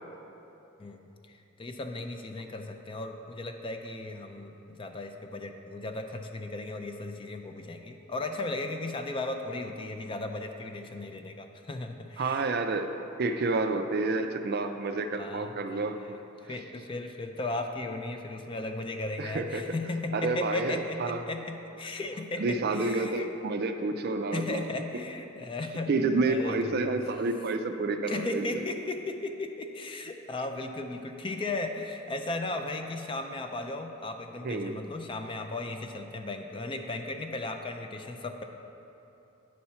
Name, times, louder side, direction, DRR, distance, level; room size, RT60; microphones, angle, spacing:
voice 1, 0.8-12.5 15.2-15.9 16.4-23.3 24.3-25.9 26.3-26.9 28.1-38.4, left 2 dB, 25° left, 6 dB, 0.4 m, -36 dB
voice 2, 12.2-12.9 13.2-16.2 19.2-19.7 20.1-21.2 22.4-24.6 25.9-28.6 34.4-34.8, right 3 dB, 50° right, 7 dB, 0.4 m, -29 dB
9.4 x 4.2 x 5.6 m, 2.9 s
head